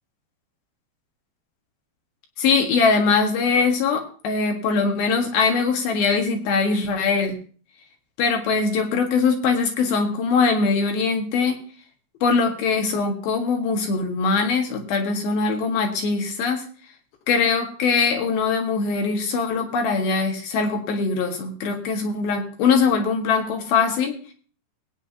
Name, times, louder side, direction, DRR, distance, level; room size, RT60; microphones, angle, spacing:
voice 1, 2.4-7.4 8.2-11.6 12.2-16.6 17.3-24.2, left 4 dB, 70° left, 3 dB, 3.4 m, -22 dB
19.5 x 9.3 x 2.8 m, 0.43 s
omnidirectional pair, 4.5 m